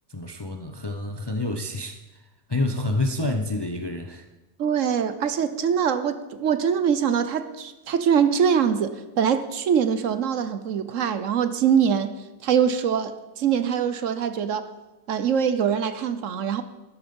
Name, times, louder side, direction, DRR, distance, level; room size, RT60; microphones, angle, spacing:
voice 1, 0.1-2.0 2.5-4.3, left 2 dB, 25° left, 0.5 m, -28 dB
voice 2, 4.6-12.1 12.4-14.7 15.1-16.6, right 7 dB, 65° right, 1.1 m, -23 dB
13.0 x 11.5 x 5.4 m
omnidirectional pair, 1.5 m